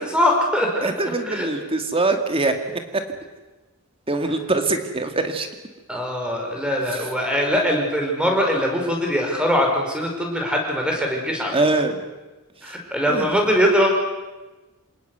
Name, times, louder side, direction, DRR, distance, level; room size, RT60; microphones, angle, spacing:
voice 1, 0.1-0.8 1.3-1.5 5.9-11.5 12.6-14.0, equal, 5° right, 1 dB, 5.4 m, -21 dB
voice 2, 0.8-2.6 2.9-3.0 4.1-5.5 6.9-7.1 11.5-12.0 13.1-13.4, right 2 dB, 25° right, 6 dB, 2.3 m, -23 dB
27.5 x 18.5 x 8.2 m, 1.2 s
head